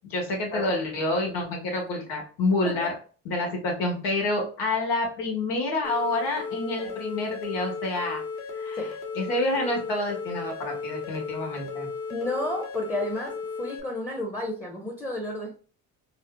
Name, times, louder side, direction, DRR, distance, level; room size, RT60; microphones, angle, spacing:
voice 1, 0.1-2.9 3.2-8.2 8.5-11.9, left 2 dB, 80° left, 0 dB, 1.5 m, -28 dB
sound 1, 5.8-13.8, left 5 dB, 50° left, 1.2 m, -35 dB
voice 2, 12.1-15.6, left 1 dB, 10° left, 1 dB, 0.8 m, -32 dB
4.1 x 2.3 x 2.2 m, 0.40 s
supercardioid pair, 80°, 35 cm